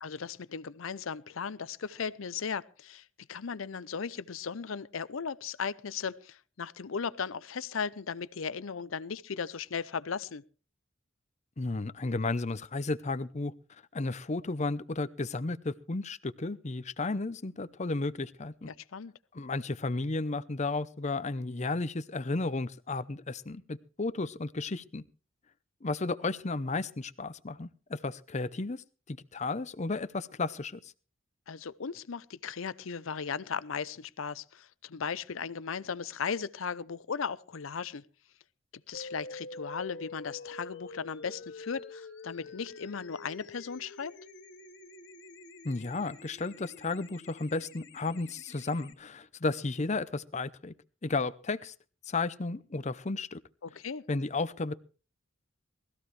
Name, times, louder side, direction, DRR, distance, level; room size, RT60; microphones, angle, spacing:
voice 1, 0.0-10.4 18.7-19.1 31.5-38.0 38.9-44.1 53.6-54.0, left 6 dB, 85° left, 0.6 m, -37 dB
voice 2, 11.6-13.5 13.9-18.7 19.3-25.0 25.8-30.9 45.6-50.7 51.0-51.7 52.1-53.4 54.1-54.7, left 3 dB, 35° left, 0.7 m, -33 dB
sound 1, 38.9-48.9, left 2 dB, 55° left, 2.2 m, -47 dB
20.0 x 14.5 x 3.2 m
head